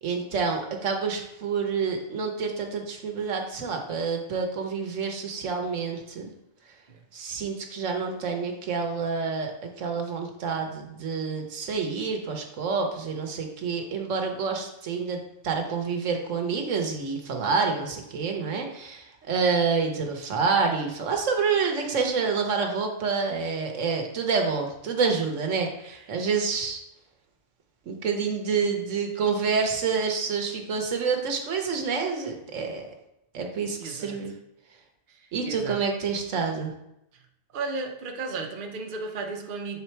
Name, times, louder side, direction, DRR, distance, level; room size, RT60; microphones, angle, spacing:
voice 1, 0.0-6.3 7.1-26.8 27.9-32.9 33.3-34.3 35.3-36.7, right 5 dB, 80° right, 4 dB, 1.3 m, -28 dB
voice 2, 33.8-34.2 35.1-35.8 37.5-39.8, right 4 dB, 50° right, 3 dB, 0.8 m, -34 dB
7.1 x 3.9 x 4.4 m, 0.84 s
omnidirectional pair, 1.3 m